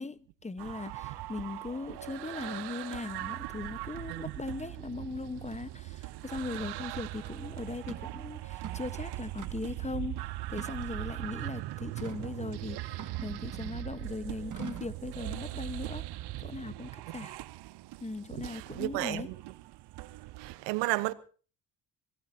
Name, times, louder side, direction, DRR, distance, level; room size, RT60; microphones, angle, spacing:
voice 1, 0.0-16.0 16.4-17.3 18.0-19.3, left 3 dB, 15° left, 1.2 m, -39 dB
sound 1, 0.6-20.6, right 17 dB, 65° right, 0.7 m, -40 dB
sound 2, 7.2-7.3 7.9-8.1 8.5-8.9 9.4-9.8 10.5-11.2 12.0-12.3 13.0-13.8 14.5-15.0, right 7 dB, 45° right, 2.1 m, -44 dB
voice 2, 18.3-19.3 20.4-21.1, right 19 dB, 90° right, 1.1 m, -33 dB
26.0 x 17.0 x 2.8 m
supercardioid pair, 60°, 42 cm